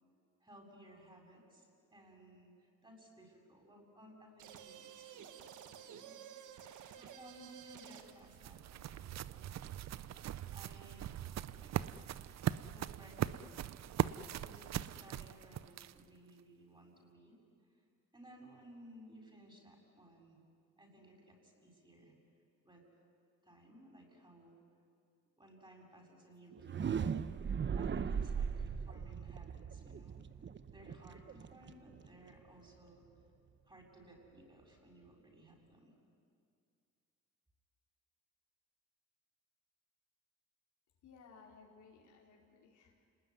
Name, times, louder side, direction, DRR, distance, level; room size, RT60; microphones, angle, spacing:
voice 1, 0.4-6.2 6.6-10.1 10.5-11.2 11.6-11.7 12.7-13.6 14.4-17.4 18.1-20.4 20.8-22.1 22.6-22.8 23.4-24.5 25.4-30.3 30.7-33.0 33.7-35.9, right 1 dB, 15° right, 0 dB, 7.3 m, -59 dB
sound 1, 4.4-8.3, right 9 dB, 80° right, 1.6 m, -52 dB
sound 2, 7.6-16.2, right 11 dB, 60° right, 0.7 m, -40 dB
sound 3, 26.5-32.4, right 6 dB, 40° right, 0.9 m, -39 dB
voice 2, 41.0-43.1, left 5 dB, 80° left, -1 dB, 4.8 m, -60 dB
29.5 x 20.0 x 9.7 m, 2.3 s
cardioid pair, 90°, 30 cm